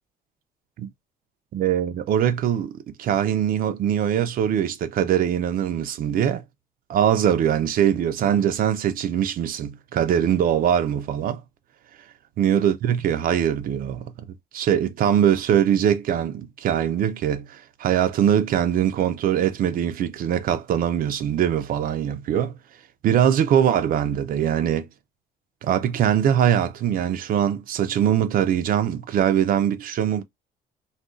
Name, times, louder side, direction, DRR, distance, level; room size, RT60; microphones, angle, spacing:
voice 1, 1.5-6.4 6.9-11.4 12.4-14.1 14.5-22.5 23.0-24.9 25.6-30.2, right 9 dB, 55° right, 0.5 m, -22 dB
2.4 x 2.3 x 3.7 m
cardioid pair, 110°, 17 cm